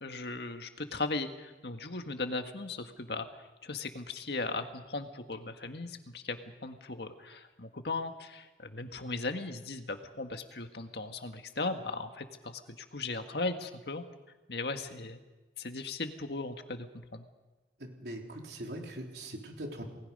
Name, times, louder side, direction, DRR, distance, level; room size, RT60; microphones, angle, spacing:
voice 1, 0.0-14.0 14.5-15.2 15.6-17.2, left 3 dB, 70° left, 6 dB, 1.7 m, -37 dB
voice 2, 17.8-19.8, right 1 dB, 70° right, 1 dB, 3.7 m, -41 dB
29.0 x 20.0 x 5.5 m, 1.2 s
head